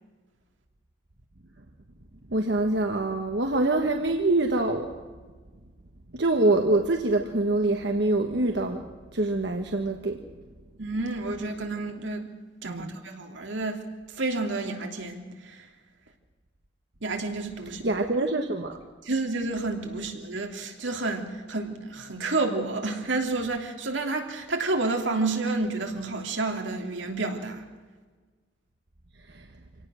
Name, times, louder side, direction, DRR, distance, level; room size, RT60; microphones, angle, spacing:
voice 1, 2.3-4.9 6.1-8.9 9.1-10.2 12.6-12.9 17.8-18.8 29.3-29.5, right 2 dB, 65° right, 4 dB, 1.3 m, -25 dB
voice 2, 10.8-12.3 12.6-13.8 14.1-15.7 17.0-17.8 19.0-27.7, right 3 dB, 90° right, 3 dB, 3.0 m, -30 dB
26.0 x 18.0 x 6.4 m, 1.4 s
head